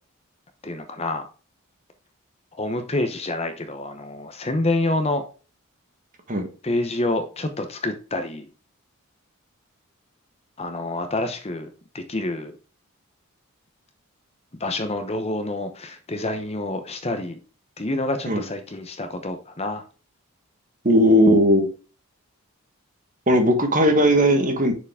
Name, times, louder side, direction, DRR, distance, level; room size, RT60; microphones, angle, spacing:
voice 1, 0.6-1.3 2.6-5.2 6.6-8.4 10.6-11.7 11.9-12.5 14.6-17.4 17.8-19.8, left 2 dB, 30° left, 7 dB, 0.8 m, -27 dB
voice 2, 20.8-21.7 23.3-24.7, equal, 35° right, 5 dB, 1.4 m, -17 dB
6.6 x 4.9 x 3.5 m, 0.36 s
head